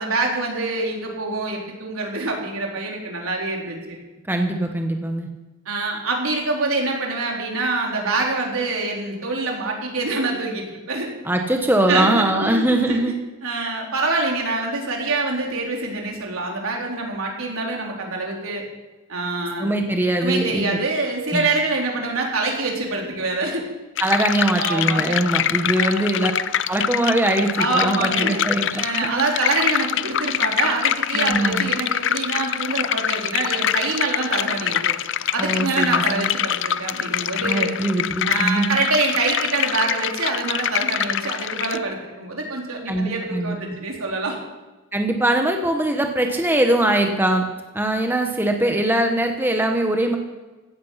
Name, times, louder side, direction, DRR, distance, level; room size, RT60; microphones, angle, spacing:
voice 1, 0.0-4.0 5.7-11.1 11.9-13.0 13.4-18.6 19.1-19.7 20.2-23.7 24.6-25.2 25.7-26.1 27.6-28.4 28.8-35.0 35.3-37.7 38.3-44.4, right 3 dB, 75° right, 0 dB, 3.9 m, -25 dB
voice 2, 4.3-5.3 11.2-13.2 19.6-20.8 21.3-21.5 24.0-26.3 26.7-29.2 31.1-31.7 35.4-36.3 37.4-38.8 42.9-43.6 44.9-47.4 47.7-50.2, right 1 dB, 10° right, 4 dB, 1.1 m, -21 dB
sound 1, 24.0-41.8, left 10 dB, 55° left, 0.5 m, -25 dB
16.5 x 14.0 x 5.8 m, 1.2 s
head